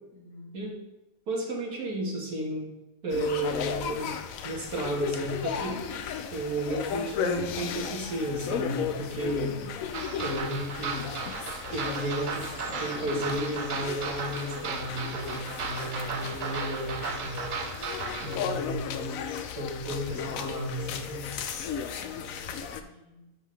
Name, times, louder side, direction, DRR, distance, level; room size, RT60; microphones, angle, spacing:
voice 1, 0.1-0.6 22.0-23.3, left 1 dB, 85° left, -3 dB, 2.7 m, -52 dB
voice 2, 1.3-2.7 3.0-4.2 4.4-5.8 6.3-9.6 10.2-11.1 11.7-17.4 18.2-19.1 19.6-21.3, right 1 dB, 90° right, -2 dB, 2.1 m, -33 dB
sound 1, 3.1-22.8, left 7 dB, 70° left, 1.0 m, -35 dB
sound 2, 9.9-18.4, right 5 dB, 55° right, 0.5 m, -36 dB
11.0 x 5.6 x 3.3 m, 1.0 s
omnidirectional pair, 1.5 m